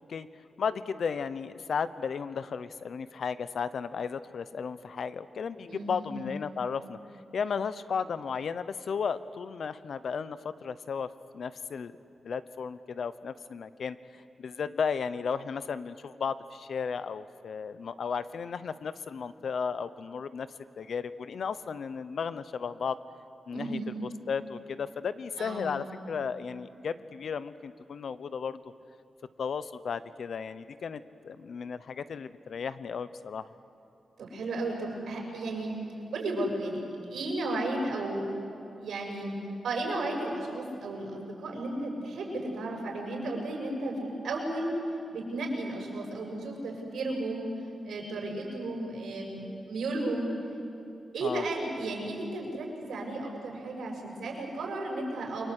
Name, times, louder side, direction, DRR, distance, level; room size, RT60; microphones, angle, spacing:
voice 1, 0.6-7.0 7.3-11.9 12.2-20.5 20.8-23.0 23.5-28.6 29.4-33.5 51.2-51.4, left 6 dB, 55° left, 14 dB, 0.8 m, -34 dB
voice 2, 5.7-6.3 23.5-23.9 25.4-25.9 34.2-35.7 36.1-38.3 38.8-39.3 39.6-44.7 45.1-47.5 47.8-50.3 51.1-55.5, right 2 dB, 85° right, 0 dB, 7.1 m, -34 dB
29.0 x 23.5 x 8.3 m, 2.8 s
wide cardioid pair, 165°, 0 cm